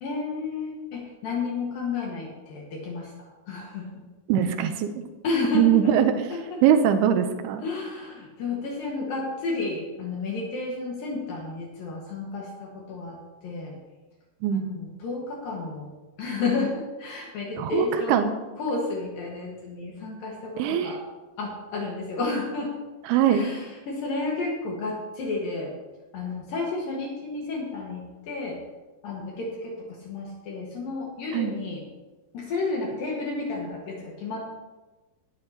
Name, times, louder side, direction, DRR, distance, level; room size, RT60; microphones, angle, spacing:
voice 1, 0.0-3.1 3.5-4.0 5.2-5.9 6.3-6.6 7.6-13.2 13.4-13.7 14.5-18.3 18.6-21.0 21.4-22.7 23.3-25.7 26.1-28.6 29.0-31.8 32.3-34.4, left 3 dB, 65° left, -2 dB, 3.2 m, -31 dB
voice 2, 4.3-5.0 5.5-6.3 6.6-7.6 14.4-14.7 17.6-18.3 20.6-21.0 23.1-23.5 31.3-31.5, right 9 dB, 90° right, 7 dB, 2.7 m, -22 dB
18.5 x 11.0 x 2.9 m, 1.2 s
omnidirectional pair, 4.6 m